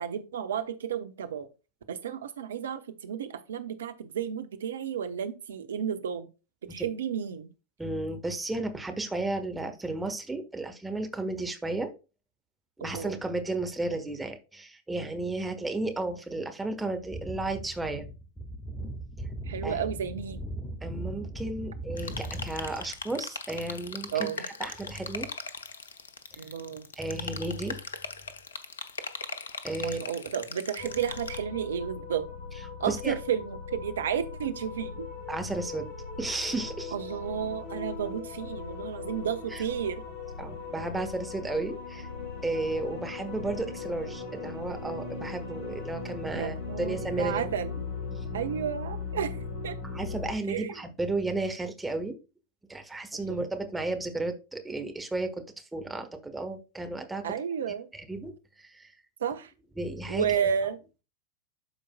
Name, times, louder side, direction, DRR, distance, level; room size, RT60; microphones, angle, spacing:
voice 1, 0.0-1.5 1.9-6.3 6.7-7.5 12.8-13.2 19.5-20.4 24.1-24.4 26.4-26.9 29.8-32.3 32.8-35.1 36.9-40.0 46.3-47.9 48.3-49.4 49.6-49.8 50.5-50.8 53.1-53.4 57.2-57.9 59.2-59.5 60.1-60.8, right 8 dB, 65° right, 9 dB, 0.8 m, -32 dB
voice 2, 7.8-11.9 12.8-18.1 19.6-19.8 20.8-25.3 27.0-27.8 29.6-30.0 32.9-33.1 35.3-35.9 36.2-36.9 39.5-39.6 40.4-42.1 42.4-47.5 48.2-48.3 49.8-52.2 52.7-57.2 57.9-58.3 58.6-58.9 59.8-60.3, right 2 dB, 10° right, 6 dB, 1.2 m, -33 dB
sound 1, 17.0-23.0, right 1 dB, 10° left, 1.5 m, -38 dB
sound 2, 22.0-31.4, left 5 dB, 70° left, 0.8 m, -39 dB
sound 3, 30.8-50.3, left 4 dB, 45° left, 3.0 m, -39 dB
12.0 x 4.7 x 2.2 m, 0.31 s
figure-of-eight pair, 90°, 0 cm